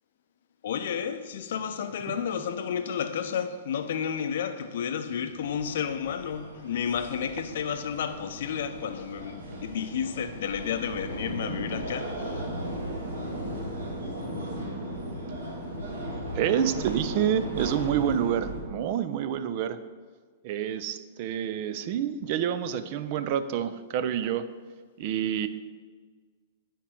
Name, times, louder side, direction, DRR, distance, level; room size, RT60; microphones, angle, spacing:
voice 1, 0.6-12.5, left 7 dB, 60° left, 0.5 m, -31 dB
sound 1, 5.4-18.6, right 1 dB, 75° right, 1.6 m, -36 dB
voice 2, 16.3-19.8 20.4-24.5 25.0-25.5, right 9 dB, 50° right, 0.5 m, -28 dB
8.8 x 4.5 x 4.5 m
figure-of-eight pair, 110°, 0 cm